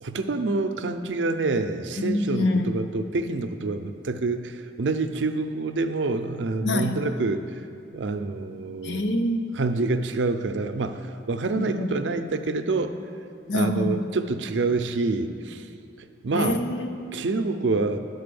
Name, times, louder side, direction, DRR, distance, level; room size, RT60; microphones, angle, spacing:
voice 1, 0.0-7.4 7.9-9.0 9.5-12.9 13.5-15.7 16.2-16.6 17.1-18.0, right 3 dB, 90° right, 8 dB, 0.5 m, -27 dB
voice 2, 2.0-2.8 6.6-7.0 8.8-9.6 11.5-11.9 13.5-14.1 16.3-17.2, left 1 dB, 85° left, 7 dB, 0.7 m, -26 dB
11.0 x 4.1 x 6.8 m, 2.5 s
head